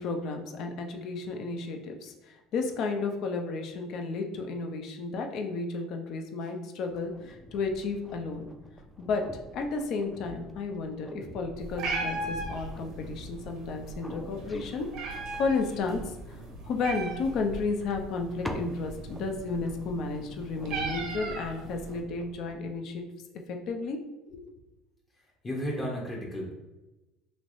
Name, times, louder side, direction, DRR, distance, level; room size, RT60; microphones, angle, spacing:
voice 1, 0.0-8.5 9.0-9.2 9.5-14.9 15.1-16.1 16.6-23.0 23.5-24.0 24.3-24.5, left 4 dB, 60° left, 4 dB, 0.5 m, -32 dB
sound 1, 6.8-22.8, equal, ahead, 0.4 m, -46 dB
Meow, 11.6-22.0, right 3 dB, 70° right, 0.8 m, -38 dB
voice 2, 25.4-26.5, equal, 30° left, -3 dB, 0.8 m, -33 dB
3.2 x 3.0 x 2.6 m, 1.0 s
supercardioid pair, 90°, 0 cm